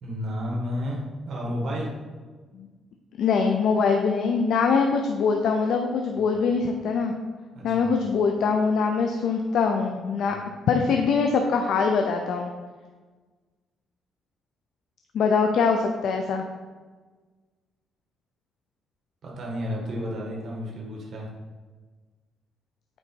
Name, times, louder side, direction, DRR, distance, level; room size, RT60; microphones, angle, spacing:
voice 1, 0.0-1.9 6.2-6.3 7.5-8.0 10.2-10.5 19.2-21.3, equal, 60° right, -2 dB, 1.9 m, -32 dB
voice 2, 3.2-7.1 7.6-10.4 10.7-12.5 15.1-16.4, left 5 dB, 75° left, 4 dB, 0.6 m, -23 dB
8.8 x 4.0 x 4.6 m, 1.4 s
cardioid pair, 90°, 0 cm